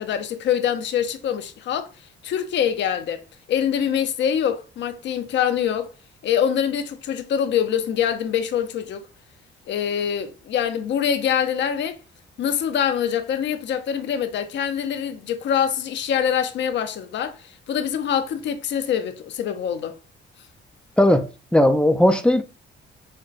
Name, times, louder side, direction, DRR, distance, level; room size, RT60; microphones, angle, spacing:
voice 1, 0.0-1.9 2.2-3.2 3.5-5.9 6.2-9.0 9.7-12.0 12.4-20.0, left 8 dB, 60° left, 0.5 m, -24 dB
voice 2, 21.0-22.4, left 1 dB, 5° left, 0.4 m, -17 dB
5.0 x 2.2 x 2.4 m
cardioid pair, 100°, 21 cm